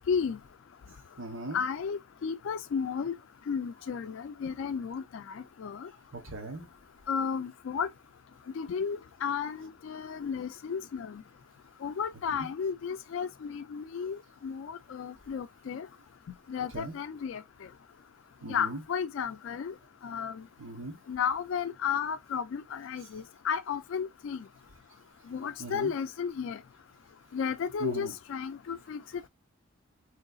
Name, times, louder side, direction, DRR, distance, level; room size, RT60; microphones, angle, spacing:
voice 1, 0.1-0.4 1.5-3.2 3.5-5.9 7.1-7.9 8.6-11.2 11.8-15.9 16.5-17.4 18.5-19.7 20.0-20.4 21.1-24.4 25.3-26.6 27.3-29.3, left 6 dB, 70° left, 0.3 m, -33 dB
voice 2, 1.2-1.6 6.1-6.6 16.7-16.9 18.4-18.8 20.6-21.0 25.6-25.9 27.8-28.1, right 2 dB, 70° right, 1.1 m, -38 dB
3.8 x 3.1 x 2.3 m
head